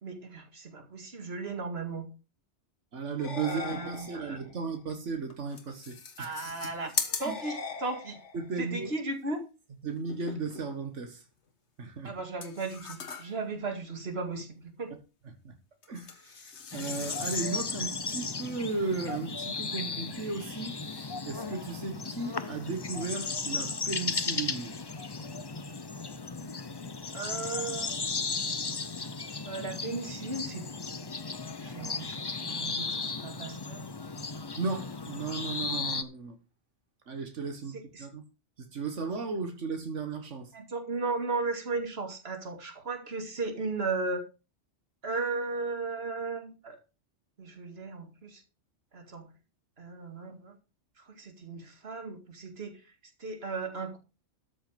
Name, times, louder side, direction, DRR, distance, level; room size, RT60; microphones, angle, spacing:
voice 1, 0.0-2.0 3.4-4.4 6.2-6.9 7.2-8.2 8.6-9.4 12.0-15.0 27.1-27.9 29.5-30.7 31.6-33.8 37.7-38.1 40.5-44.3 45.0-46.8 47.4-48.4 48.9-49.3 49.8-50.5 51.1-52.8 53.2-54.0, right 3 dB, 60° right, 2.4 m, -36 dB
voice 2, 2.9-6.3 6.6-6.7 7.2-7.4 8.3-8.9 9.8-11.2 11.8-12.2 15.4-15.5 15.9-24.8 34.6-36.4 37.1-38.2 38.6-40.5, right 4 dB, 90° right, 1.9 m, -35 dB
sound 1, 3.2-4.6 7.2-8.6, left 5 dB, 85° left, 2.0 m, -41 dB
sound 2, 4.9-5.0 5.3-8.0 9.9-10.9 12.4-13.6 15.8-17.8, left 6 dB, 70° left, 1.6 m, -40 dB
sound 3, 16.7-36.0, left 4 dB, 25° left, 0.6 m, -35 dB
13.0 x 6.7 x 5.2 m
omnidirectional pair, 1.2 m